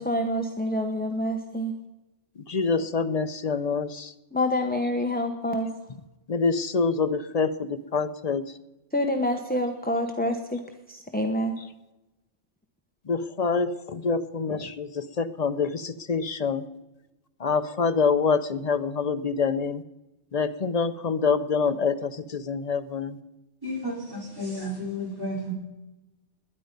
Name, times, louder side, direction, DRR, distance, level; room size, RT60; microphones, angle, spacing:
voice 1, 0.0-1.7 4.3-5.7 8.9-10.6 10.9-11.6, left 1 dB, 10° left, 4 dB, 1.0 m, -27 dB
voice 2, 2.5-4.1 6.3-8.5 13.1-16.6 17.4-19.8 20.3-23.2, left 5 dB, 40° left, 10 dB, 0.6 m, -26 dB
voice 3, 23.6-25.5, equal, 20° right, -3 dB, 4.3 m, -32 dB
20.5 x 10.5 x 5.3 m, 1.0 s
omnidirectional pair, 1.2 m